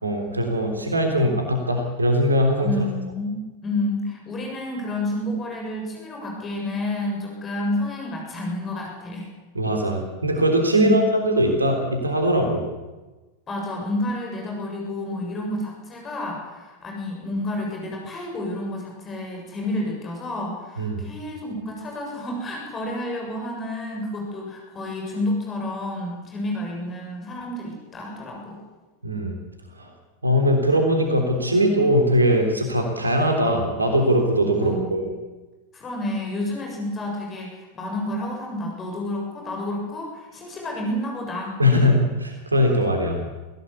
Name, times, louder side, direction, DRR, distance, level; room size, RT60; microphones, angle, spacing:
voice 1, 0.0-2.7 9.5-12.6 20.8-21.0 29.0-29.3 29.8-29.9 30.2-35.1 41.6-43.2, equal, 80° right, 3 dB, 3.4 m, -21 dB
voice 2, 2.6-9.3 10.7-11.2 13.5-28.6 34.6-35.0 35.7-41.8, left 1 dB, 20° left, 0 dB, 7.2 m, -30 dB
24.0 x 17.0 x 8.4 m, 1.2 s
figure-of-eight pair, 90°, 0 cm